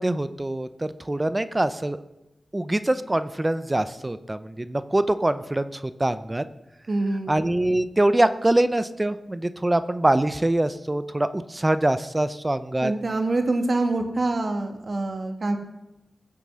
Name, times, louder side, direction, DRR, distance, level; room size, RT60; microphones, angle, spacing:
voice 1, 0.0-2.0 2.5-6.4 7.3-12.9, right 1 dB, 20° right, 12 dB, 0.7 m, -24 dB
voice 2, 6.9-7.3 12.8-15.6, right 2 dB, 55° right, 5 dB, 2.0 m, -25 dB
21.0 x 7.7 x 6.3 m, 0.93 s
wide cardioid pair, 100°, 0 cm